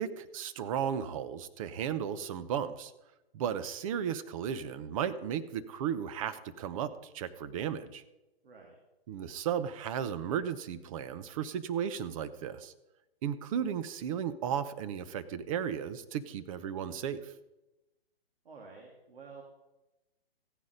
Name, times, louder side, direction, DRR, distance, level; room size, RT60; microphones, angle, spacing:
voice 1, 0.0-2.9 3.3-6.9 7.1-8.0 9.1-12.7 13.2-17.3, right 8 dB, 35° right, 12 dB, 0.9 m, -35 dB
voice 2, 8.4-8.8 18.4-19.4, right 4 dB, 70° right, 0 dB, 3.0 m, -50 dB
15.5 x 9.6 x 5.2 m, 0.97 s
hypercardioid pair, 145°, 30 cm